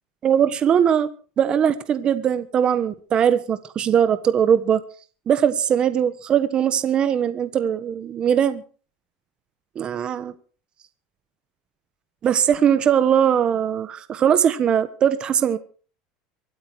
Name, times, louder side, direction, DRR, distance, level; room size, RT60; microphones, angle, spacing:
voice 1, 0.2-1.1 1.4-4.8 5.3-8.6 9.7-10.3 12.2-15.6, right 8 dB, 35° right, 12 dB, 1.3 m, -20 dB
24.0 x 8.6 x 4.8 m, 0.39 s
supercardioid pair, 120°, 3 cm